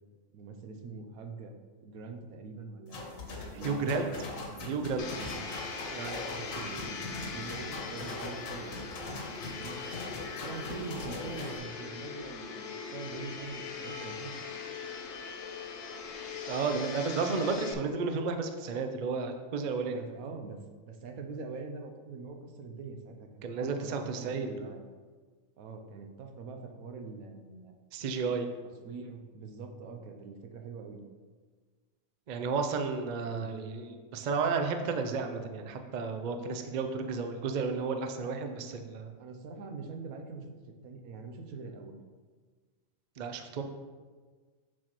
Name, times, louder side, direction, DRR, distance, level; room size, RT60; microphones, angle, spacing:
voice 1, 0.3-1.6 1.8-3.2 3.5-4.8 5.1-5.4 6.4-8.9 9.4-9.8 10.4-14.3 19.9-24.8 25.6-27.7 28.8-31.0 33.2-33.6 38.4-38.5 39.2-40.4 40.8-42.0, right 4 dB, 85° right, 4 dB, 1.2 m, -44 dB
sound 1, 2.9-11.6, left 2 dB, 75° left, 1.4 m, -41 dB
voice 2, 3.6-4.1 4.7-5.1 5.9-6.7 16.5-20.0 23.4-24.7 27.9-28.5 32.3-39.1 43.2-43.6, right 4 dB, 60° right, 6 dB, 0.4 m, -32 dB
Domestic sounds home sounds, 5.0-17.7, left 5 dB, 55° left, 0.6 m, -41 dB
6.2 x 6.2 x 3.0 m, 1.5 s
omnidirectional pair, 1.4 m